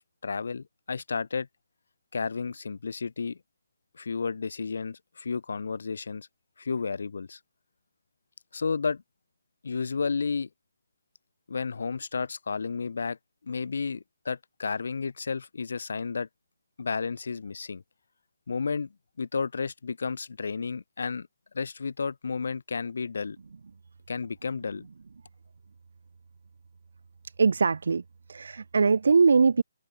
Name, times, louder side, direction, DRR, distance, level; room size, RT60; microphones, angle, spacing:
voice 1, 0.0-1.5 2.1-3.4 3.9-6.3 6.6-7.4 8.5-9.0 9.6-10.5 11.5-13.2 13.4-16.3 16.8-17.8 18.5-18.9 19.2-21.3 21.5-23.4 24.1-24.9, left 5 dB, 70° left, 3.0 m, -32 dB
voice 2, 27.4-28.0 28.3-29.6, right 5 dB, 70° right, 3.2 m, -21 dB
open air
hypercardioid pair, 155°, 0 cm